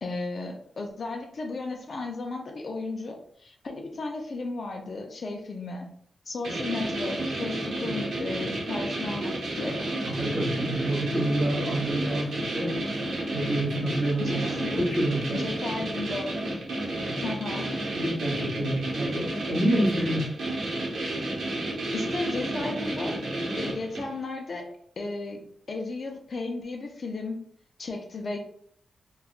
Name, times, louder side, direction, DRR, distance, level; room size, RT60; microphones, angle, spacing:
voice 1, 0.0-5.9 6.3-9.9 14.2-14.8 15.3-16.6 17.2-17.7 19.0-19.1 21.9-23.2 23.6-24.7 25.0-27.4 27.8-28.4, left 3 dB, 45° left, 2 dB, 0.3 m, -34 dB
sound 1, 6.4-24.2, right 1 dB, 80° right, 0.8 m, -31 dB
voice 2, 10.0-12.8 13.3-15.4 17.9-20.3, right 1 dB, 35° right, -4 dB, 1.3 m, -28 dB
2.9 x 2.2 x 2.3 m, 0.63 s
wide cardioid pair, 180°, 0 cm